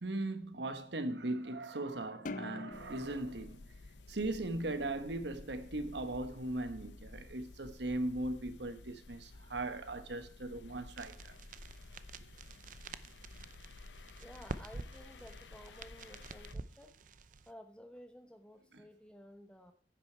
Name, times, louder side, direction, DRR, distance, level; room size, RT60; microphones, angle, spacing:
voice 1, 0.0-3.7 4.1-11.4 12.2-12.3 18.7-18.8, right 2 dB, 80° right, 1.2 m, -38 dB
sound 1, 2.2-4.8, left 2 dB, 45° left, 0.6 m, -46 dB
sound 2, 2.7-16.5, left 3 dB, 90° left, 0.7 m, -53 dB
sound 3, 11.0-17.5, right 3 dB, 50° right, 0.6 m, -48 dB
voice 2, 14.2-17.1 17.5-19.7, equal, 5° left, 0.9 m, -54 dB
10.0 x 8.7 x 4.5 m
head